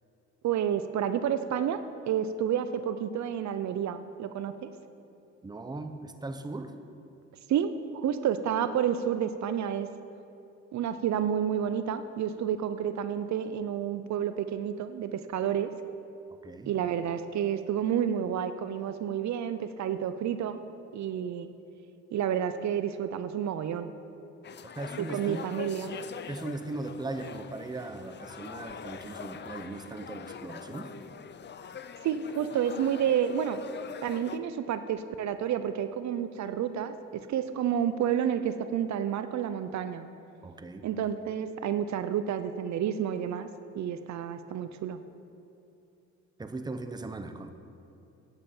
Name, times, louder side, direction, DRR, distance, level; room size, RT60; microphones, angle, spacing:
voice 1, 0.4-1.8 2.1-4.7 7.5-9.9 10.7-15.7 16.7-20.6 20.9-21.5 22.1-23.9 25.0-26.0 32.0-33.6 34.0-40.1 40.8-43.5 43.7-45.0, right 9 dB, 65° right, 11 dB, 0.6 m, -30 dB
voice 2, 5.4-6.7 16.4-16.7 24.6-25.5 26.3-30.9 40.4-40.8 46.4-47.5, right 2 dB, 15° right, 8 dB, 0.8 m, -38 dB
sound 1, 24.4-34.4, left 7 dB, 35° left, 0.6 m, -43 dB
9.1 x 8.9 x 7.2 m, 2.9 s
cardioid pair, 90°, 30 cm